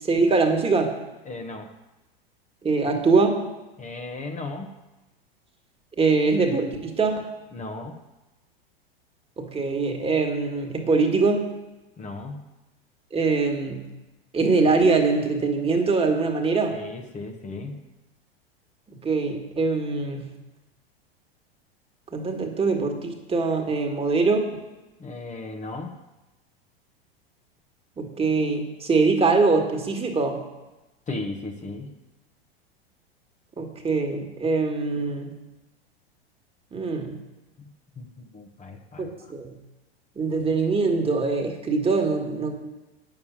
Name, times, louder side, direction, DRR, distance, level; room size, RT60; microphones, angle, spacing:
voice 1, 0.1-0.9 2.6-3.4 6.0-7.2 9.4-11.4 13.1-13.9 14.3-16.8 19.0-20.2 22.1-24.5 28.0-30.4 33.6-35.3 36.7-37.2 39.0-39.5 40.2-42.5, right 4 dB, 20° right, 2 dB, 1.9 m, -23 dB
voice 2, 1.2-1.7 3.8-4.7 7.5-8.0 12.0-12.4 16.7-17.8 25.0-25.9 31.1-31.9 37.6-39.1, left 3 dB, 25° left, 2 dB, 1.2 m, -36 dB
9.5 x 7.1 x 7.4 m, 1.1 s
hypercardioid pair, 105°, 31 cm